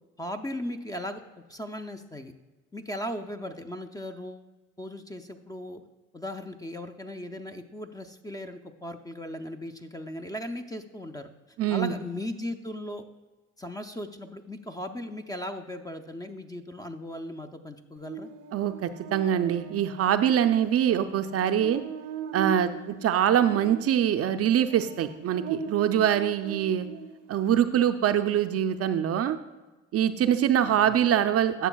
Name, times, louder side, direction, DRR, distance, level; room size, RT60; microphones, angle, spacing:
voice 1, 0.2-1.2 1.5-2.3 2.7-4.5 4.8-5.8 6.1-11.3 11.7-13.0 13.6-18.3 30.6-30.9, left 1 dB, 10° left, 7 dB, 0.5 m, -37 dB
voice 2, 11.6-11.9 18.5-21.8 22.3-26.9 27.3-29.4 29.9-31.7, right 10 dB, 45° right, 9 dB, 0.5 m, -24 dB
Buzz, 18.1-27.5, right 7 dB, 85° right, 0.7 m, -40 dB
11.0 x 6.9 x 2.3 m, 1.2 s
supercardioid pair, 85°, 33 cm